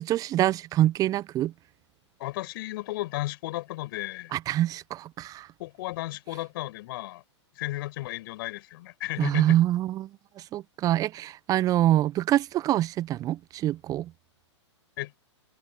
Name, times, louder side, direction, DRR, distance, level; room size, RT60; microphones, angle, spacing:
voice 1, 0.0-1.5 4.3-5.5 9.2-10.1 10.4-14.1, right 13 dB, 25° right, 0.8 m, -25 dB
voice 2, 2.2-4.3 5.6-7.2 7.6-9.6 15.0-15.2, left 18 dB, 50° left, 6.8 m, -34 dB
open air
figure-of-eight pair, 115°, 15 cm